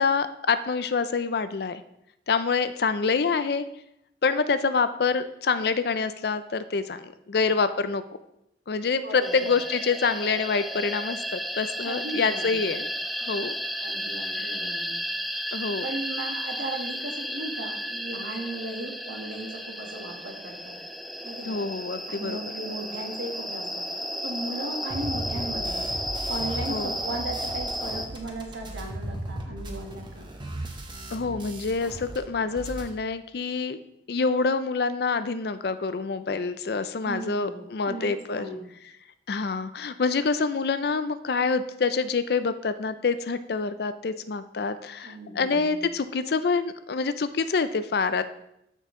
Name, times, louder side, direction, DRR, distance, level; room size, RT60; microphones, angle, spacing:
voice 1, 0.0-1.8 2.3-3.7 4.2-8.0 8.7-12.9 13.2-13.5 15.5-15.9 21.4-22.4 26.7-26.9 31.1-33.8 34.1-38.5 39.3-48.2, left 4 dB, 60° left, 12 dB, 0.5 m, -26 dB
voice 2, 9.0-9.4 11.8-12.6 13.8-15.0 15.8-20.8 21.2-21.6 22.1-23.8 24.2-25.8 26.3-30.3 37.0-38.6 45.0-45.9, right 2 dB, 85° right, 2 dB, 1.4 m, -36 dB
sound 1, 9.2-28.1, equal, ahead, 0.4 m, -33 dB
sound 2, 24.9-32.2 32.4-32.9, right 1 dB, 25° right, 1.0 m, -37 dB
13.0 x 4.6 x 3.7 m, 0.79 s
head